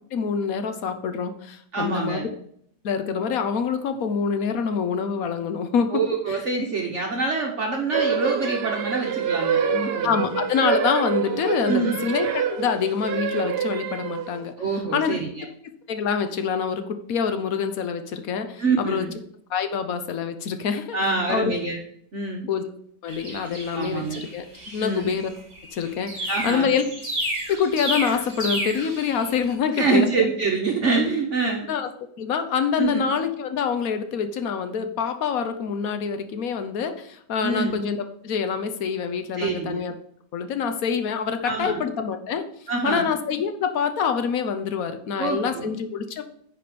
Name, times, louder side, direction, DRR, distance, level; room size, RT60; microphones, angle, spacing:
voice 1, 0.1-2.3 2.8-5.9 6.3-6.4 10.0-14.5 14.9-15.2 15.9-19.1 19.5-21.0 21.3-21.5 22.5-22.7 23.0-24.4 24.7-25.3 25.7-26.8 27.5-30.2 31.7-31.9 32.2-38.0 38.2-39.9 40.3-42.4 42.8-46.2, left 6 dB, 60° left, 8 dB, 1.2 m, -26 dB
voice 2, 1.7-2.3 5.9-10.2 11.7-12.0 14.6-15.5 18.6-19.1 20.9-21.8 22.1-22.5 23.7-24.2 24.8-25.1 26.3-26.7 29.7-31.7 32.8-33.0 37.4-37.8 39.4-39.8 41.4-41.8 42.7-43.1 45.2-45.7, right 4 dB, 50° right, 0 dB, 1.2 m, -25 dB
sound 1, 7.9-14.5, right 7 dB, 75° right, 0.5 m, -26 dB
sound 2, 23.1-29.5, right 1 dB, 30° right, 2.0 m, -32 dB
9.8 x 4.2 x 5.0 m, 0.67 s
omnidirectional pair, 1.8 m